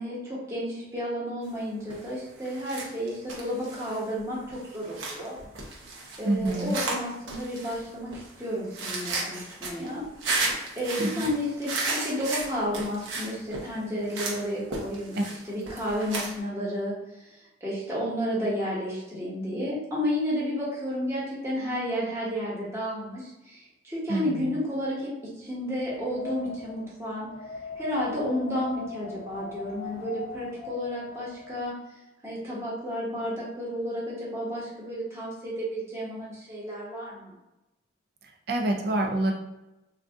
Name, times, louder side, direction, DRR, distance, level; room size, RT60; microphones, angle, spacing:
voice 1, 0.0-5.4 6.2-15.2 15.5-16.9 17.2-27.3 27.8-31.7 32.2-37.3, equal, 15° right, -7 dB, 1.0 m, -32 dB
sound 1, 1.9-2.1 2.4-16.4, right 3 dB, 90° right, 0.7 m, -34 dB
voice 2, 6.2-6.8 11.0-11.3 15.1-15.2 24.1-24.5 38.5-39.3, right 1 dB, 55° right, 1 dB, 0.5 m, -26 dB
Wind, 25.6-31.7, left 3 dB, 50° left, 0.3 m, -41 dB
2.6 x 2.4 x 3.4 m, 0.96 s
head